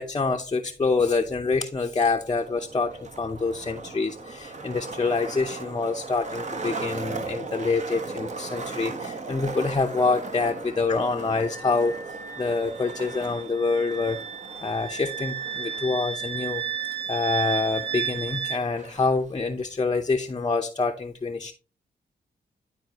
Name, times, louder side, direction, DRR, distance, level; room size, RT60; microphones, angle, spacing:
voice 1, 0.0-14.2 14.6-16.6 17.1-21.5, left 4 dB, 25° left, 5 dB, 0.7 m, -26 dB
Skateboard, 2.2-19.2, right 3 dB, 40° right, 1.1 m, -38 dB
Wind instrument woodwind instrument, 11.3-18.6, right 8 dB, 80° right, 1.2 m, -34 dB
11.5 x 4.2 x 2.9 m, 0.34 s
cardioid pair, 65°, 18 cm